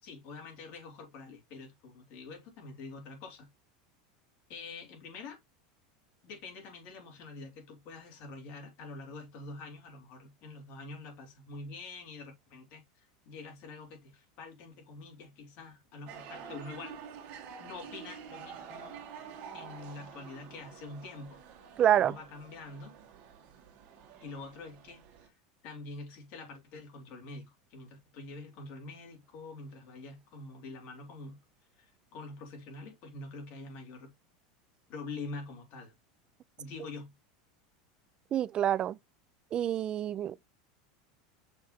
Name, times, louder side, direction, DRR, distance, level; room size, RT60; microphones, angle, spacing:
voice 1, 0.0-3.5 4.5-5.4 6.2-17.0 17.6-18.9 19.5-21.4 21.9-22.9 24.2-25.3 25.6-31.4 31.8-34.1 34.9-35.9 36.6-37.1, left 3 dB, 45° left, 3.1 m, -46 dB
sound 1, 16.1-25.3, right 7 dB, 45° right, 1.6 m, -48 dB
voice 2, 21.8-22.1 38.3-39.0 39.5-40.4, right 10 dB, 25° right, 0.3 m, -27 dB
6.5 x 3.6 x 4.2 m
supercardioid pair, 155°, 4 cm